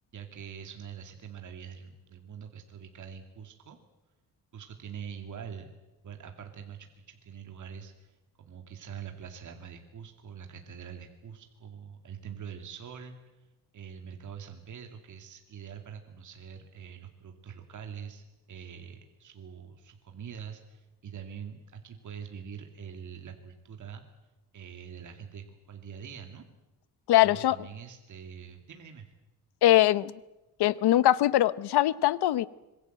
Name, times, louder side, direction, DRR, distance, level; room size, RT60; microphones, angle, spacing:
voice 1, 0.1-3.8 4.5-5.7 6.0-13.2 13.7-24.0 24.5-26.4 27.2-29.1, right 7 dB, 50° right, 2.5 m, -44 dB
voice 2, 27.1-27.6 29.6-30.1 30.6-32.5, left 14 dB, 75° left, 0.9 m, -22 dB
25.5 x 22.0 x 8.0 m
cardioid pair, 140°, 39 cm